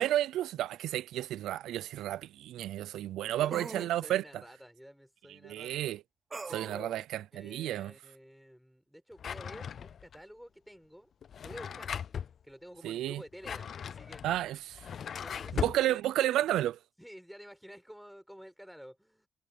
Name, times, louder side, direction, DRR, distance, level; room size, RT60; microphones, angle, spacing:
voice 1, 0.0-4.2 5.4-6.0 6.5-7.9 12.8-13.2 14.2-14.8 15.5-16.8, right 13 dB, 85° right, 0.4 m, -31 dB
sound 1, 1.2-1.3 3.5-3.9 6.3-6.8, right 4 dB, 20° right, 1.0 m, -41 dB
voice 2, 3.3-5.8 6.5-7.0 7.3-11.1 11.4-11.9 12.4-14.2 15.1-16.0 16.4-16.5 17.0-19.3, equal, ahead, 6.5 m, -50 dB
Drawer open or close, 9.2-10.2 11.2-12.3 13.2-15.8, left 8 dB, 50° left, 0.5 m, -38 dB
cardioid pair, 135°, 0 cm